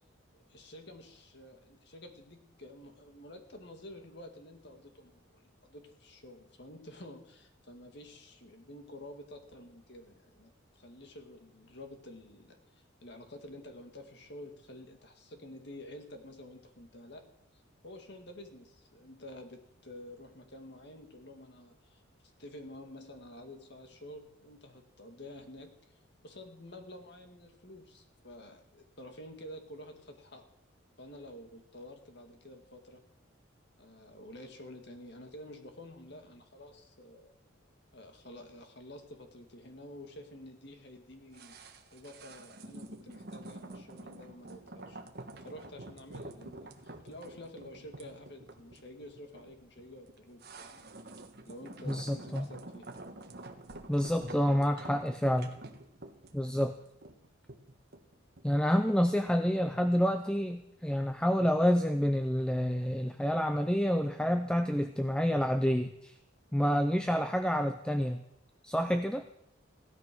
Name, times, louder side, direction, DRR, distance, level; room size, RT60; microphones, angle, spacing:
voice 1, 0.3-17.2 17.5-22.0 22.4-25.9 26.2-30.4 31.0-33.0 33.8-37.3 37.9-41.6 41.9-45.0 45.4-50.9 51.4-52.9, left 1 dB, 55° left, 5 dB, 2.1 m, -50 dB
sound 1, 41.3-58.6 58.9-59.0, right 2 dB, 50° right, 1.4 m, -48 dB
voice 2, 51.9-52.5 53.9-55.5 56.3-56.7 58.4-66.1 66.5-68.2 68.6-69.2, equal, 5° left, 7 dB, 0.5 m, -28 dB
16.5 x 12.5 x 6.1 m, 0.80 s
head